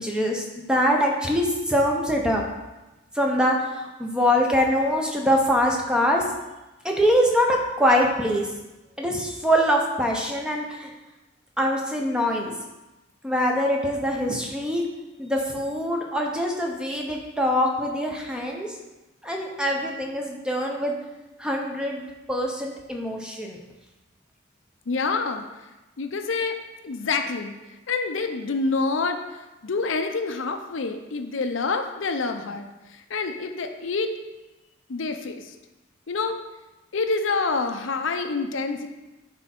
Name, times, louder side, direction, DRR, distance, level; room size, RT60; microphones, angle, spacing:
voice 1, 0.0-2.4 3.1-6.2 6.8-8.5 9.0-10.9 11.6-12.5 13.2-14.8 15.2-18.7 19.2-21.0 21.4-23.6, equal, 5° right, 0 dB, 0.7 m, -23 dB
voice 2, 24.9-25.4 26.0-26.6 26.8-27.5 27.9-29.2 29.6-34.1 34.9-35.4 36.1-36.4 36.9-38.9, left 4 dB, 65° left, 6 dB, 0.6 m, -27 dB
9.6 x 3.6 x 4.3 m, 1.1 s
head